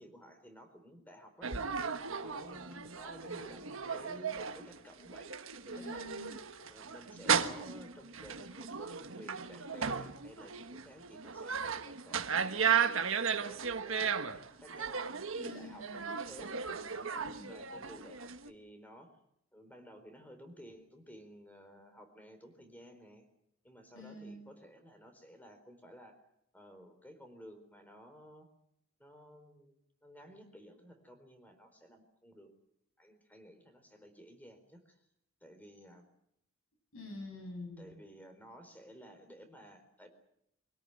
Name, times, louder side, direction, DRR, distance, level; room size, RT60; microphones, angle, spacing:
voice 1, 0.0-1.5 2.0-5.3 5.6-6.1 6.7-14.3 14.6-15.0 15.4-16.6 16.8-17.1 17.5-19.1 19.5-23.3 23.6-26.2 26.5-28.5 29.0-29.7 30.0-32.5 33.0-35.0 35.4-36.1 37.8-40.1, equal, 5° left, 7 dB, 4.2 m, -54 dB
sound 1, 1.4-18.5, right 6 dB, 70° right, 1.4 m, -35 dB
voice 2, 5.7-6.3 15.3-15.9 17.1-17.5 23.9-24.5 36.9-38.0, left 2 dB, 70° left, 6 dB, 7.7 m, -47 dB
25.5 x 17.5 x 9.0 m, 0.76 s
head